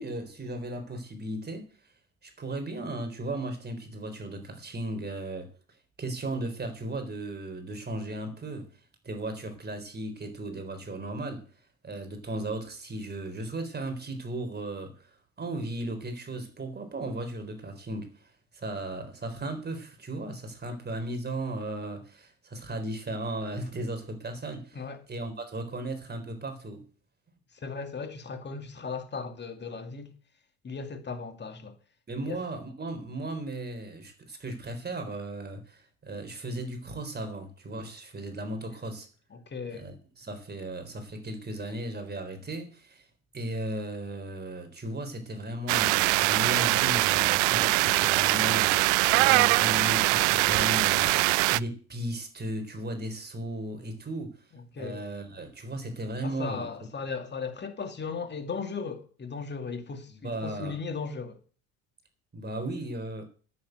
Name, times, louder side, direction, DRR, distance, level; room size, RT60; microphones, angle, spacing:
voice 1, 0.0-1.7 2.2-5.5 6.0-8.7 9.0-11.4 11.8-24.8 25.1-26.8 32.1-39.1 39.7-43.1 43.3-54.3 54.8-56.7 60.1-60.8 62.3-63.3, right 1 dB, 25° right, 3.9 m, -36 dB
voice 2, 27.5-30.1 30.6-31.8 32.2-32.4 39.3-39.9 54.5-55.0 56.2-61.4, left 5 dB, 25° left, 2.5 m, -37 dB
sound 1, 45.7-51.6, right 25 dB, 75° right, 0.5 m, -23 dB
10.5 x 8.9 x 7.9 m
supercardioid pair, 85°, 40 cm